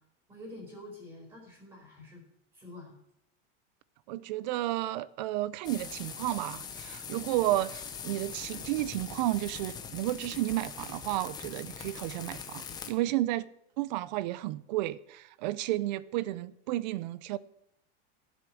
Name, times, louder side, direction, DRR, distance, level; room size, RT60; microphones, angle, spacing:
voice 1, 0.3-2.2 2.5-2.9, left 1 dB, 15° right, 4.1 m, -47 dB
voice 2, 4.1-13.5 13.8-17.4, right 16 dB, 40° right, 0.4 m, -32 dB
sound 1, 5.6-12.9, left 7 dB, 10° left, 0.7 m, -42 dB
14.5 x 7.9 x 6.2 m
supercardioid pair, 175°, 35 cm